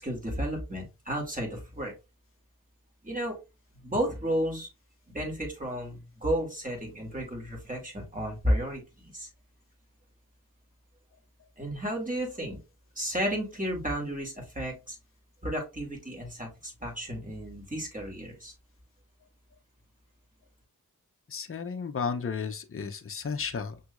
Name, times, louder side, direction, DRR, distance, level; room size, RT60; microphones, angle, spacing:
voice 1, 0.0-1.9 3.0-3.4 3.8-4.7 5.1-9.3 11.6-12.6 13.0-15.0 15.4-18.5, equal, 25° right, 2.3 m, -32 dB
voice 2, 21.3-23.8, left 5 dB, 40° left, 0.6 m, -33 dB
5.9 x 2.8 x 2.4 m
cardioid pair, 45°, 35 cm